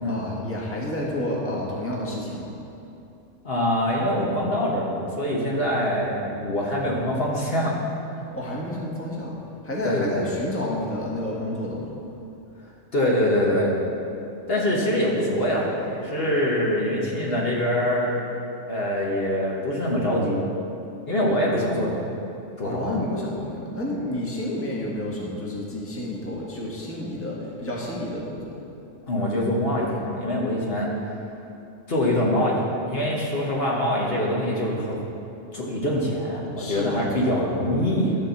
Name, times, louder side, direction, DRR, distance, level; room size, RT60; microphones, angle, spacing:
voice 1, 0.0-2.5 8.3-9.3 9.6-11.9 14.7-14.9 22.6-28.4 36.6-37.3, left 1 dB, 10° left, -4 dB, 1.4 m, -30 dB
voice 2, 3.4-7.7 9.8-10.2 12.9-13.7 14.5-18.2 18.7-20.4 21.1-22.0 22.6-22.9 29.1-30.9 31.9-35.0 35.5-38.1, left 1 dB, 50° left, -4 dB, 1.5 m, -24 dB
12.5 x 4.5 x 7.0 m, 2.8 s
omnidirectional pair, 1.3 m